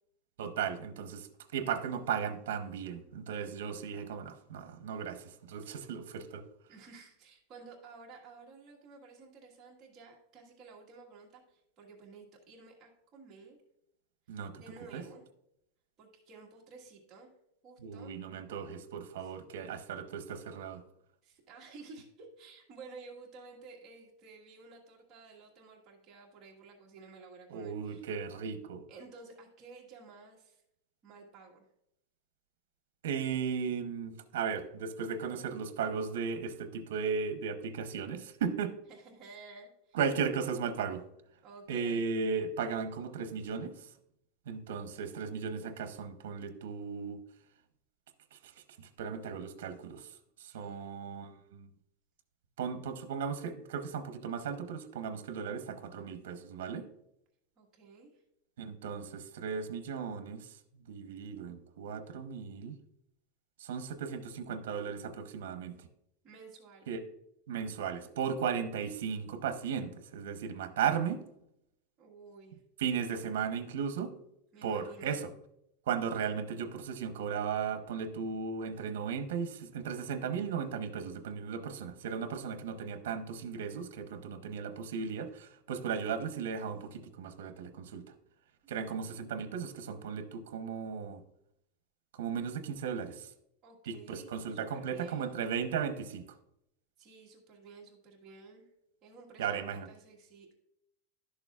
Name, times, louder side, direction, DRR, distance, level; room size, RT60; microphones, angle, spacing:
voice 1, 0.4-6.4 14.3-14.5 14.9-15.0 17.8-20.8 27.5-28.8 33.0-38.7 39.9-41.0 41.7-43.7 44.5-47.2 48.3-48.4 49.0-50.1 50.4-51.7 52.6-56.9 58.6-60.5 60.9-62.8 63.6-65.7 66.9-67.0 67.5-71.2 72.8-74.1 74.6-75.3 75.9-88.0 88.7-91.2 92.1-93.3 93.9-96.2 99.4-99.9, right 6 dB, 80° right, 9 dB, 0.8 m, -36 dB
voice 2, 6.7-13.6 14.3-15.2 16.0-17.3 17.6-18.2 19.2-19.4 21.2-28.0 28.9-30.6 31.0-31.6 38.9-40.0 41.4-42.0 50.4-51.0 57.6-58.2 66.2-66.9 72.0-72.6 74.5-75.2 88.6-88.9 93.6-95.4 97.0-98.7 99.0-100.5, right 4 dB, 20° right, -2 dB, 1.5 m, -53 dB
11.5 x 6.7 x 2.4 m, 0.79 s
supercardioid pair, 180°, 0 cm